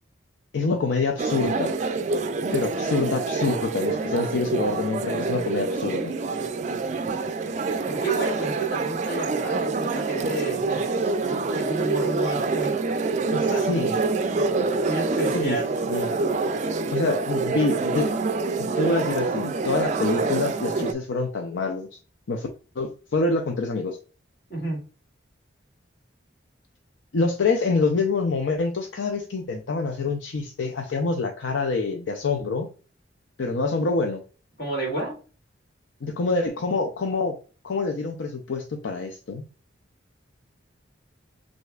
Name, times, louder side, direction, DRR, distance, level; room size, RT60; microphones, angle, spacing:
voice 1, 0.5-1.7 2.5-6.1 13.3-14.0 15.3-15.6 15.9-16.1 16.9-18.1 18.6-22.0 22.3-22.5 22.8-24.0 27.1-32.7 33.4-34.2 36.0-37.4 37.6-39.4, left 3 dB, 80° left, 4 dB, 0.5 m, -26 dB
sound 1, 1.2-20.9, right 4 dB, 40° right, 0.3 m, -26 dB
voice 2, 7.5-12.8 13.5-13.6 14.9-15.7 24.5-24.8 34.6-35.2, right 2 dB, 60° left, -1 dB, 2.0 m, -31 dB
6.4 x 2.7 x 2.3 m, 0.37 s
head